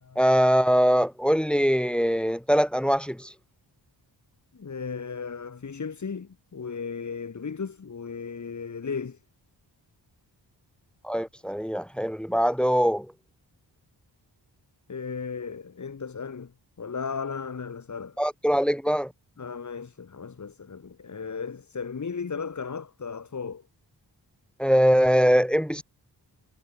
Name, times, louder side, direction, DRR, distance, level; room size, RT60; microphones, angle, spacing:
voice 1, 0.2-3.3 11.0-13.1 18.2-19.1 24.6-25.8, equal, ahead, 2.6 m, -22 dB
voice 2, 4.5-9.2 14.9-16.5 16.8-18.2 19.4-23.7, left 5 dB, 40° left, 2.1 m, -35 dB
wide cardioid pair, 125°, 43 cm